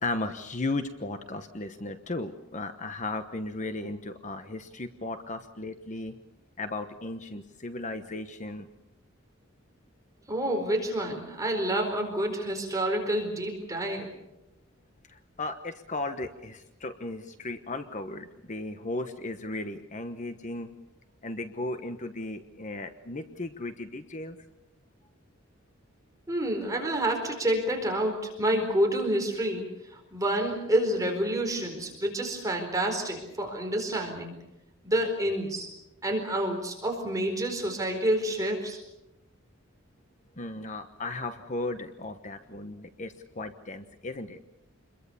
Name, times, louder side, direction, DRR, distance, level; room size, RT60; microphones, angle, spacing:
voice 1, 0.0-6.1 6.6-8.7 15.1-20.7 21.2-24.4 40.4-44.4, left 2 dB, 35° left, 8 dB, 1.1 m, -35 dB
voice 2, 10.3-14.1 26.3-34.3 34.8-35.7 36.0-38.8, right 1 dB, 15° right, 2 dB, 4.4 m, -28 dB
28.0 x 22.0 x 7.1 m, 0.90 s
head